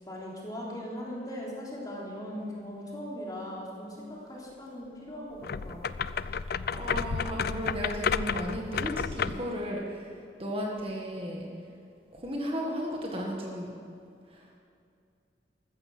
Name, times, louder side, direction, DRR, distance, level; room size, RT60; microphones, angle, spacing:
voice 1, 0.1-5.4 5.6-5.8, equal, 20° left, -4 dB, 3.6 m, -39 dB
sound 1, 5.4-9.5, left 6 dB, 60° left, 0.4 m, -31 dB
voice 2, 6.7-11.5 12.1-13.8 14.3-14.5, equal, 30° right, -1 dB, 1.8 m, -34 dB
14.5 x 14.0 x 6.2 m, 2.4 s
head